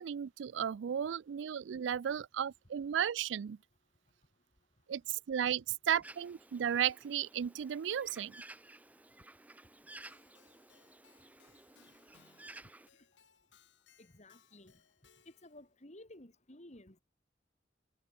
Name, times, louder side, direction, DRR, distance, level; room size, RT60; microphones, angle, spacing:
voice 1, 0.0-3.6 4.9-8.3, right 9 dB, 75° right, 0.4 m, -34 dB
Bird, 6.0-12.9, right 2 dB, 10° right, 0.9 m, -55 dB
Keyboard (musical), 10.0-15.7, left 6 dB, 75° left, 3.7 m, -67 dB
voice 2, 14.0-14.7 15.2-17.0, left 1 dB, 40° left, 3.3 m, -55 dB
head